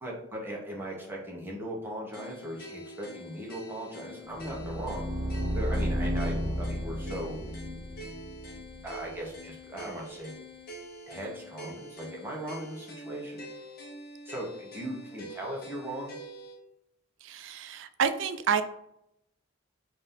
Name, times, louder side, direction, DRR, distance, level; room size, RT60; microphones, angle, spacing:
voice 1, 0.0-5.1 5.5-7.4 8.8-10.3 11.1-13.5 14.2-16.2, right 1 dB, 10° right, -3 dB, 0.9 m, -38 dB
sound 1, 2.1-16.6, equal, 50° left, 0.9 m, -45 dB
sound 2, 4.3-9.2, equal, 40° right, 0.8 m, -33 dB
voice 2, 17.2-18.6, right 7 dB, 65° right, 10 dB, 0.4 m, -29 dB
3.9 x 2.7 x 3.6 m, 0.79 s
head